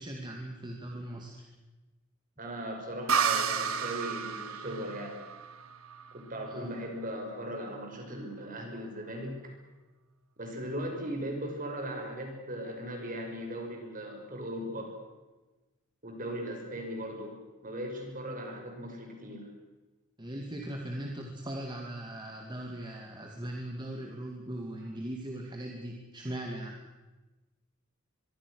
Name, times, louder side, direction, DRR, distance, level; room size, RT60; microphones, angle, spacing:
voice 1, 0.0-1.5 6.5-6.7 20.2-26.8, right 1 dB, 20° right, 0 dB, 2.4 m, -39 dB
voice 2, 2.4-5.2 6.1-9.5 10.4-14.9 16.0-17.3 17.6-19.5, equal, 40° right, 2 dB, 6.0 m, -38 dB
sound 1, 3.1-6.6, right 6 dB, 80° right, 1.6 m, -31 dB
24.5 x 23.0 x 6.5 m, 1.2 s
head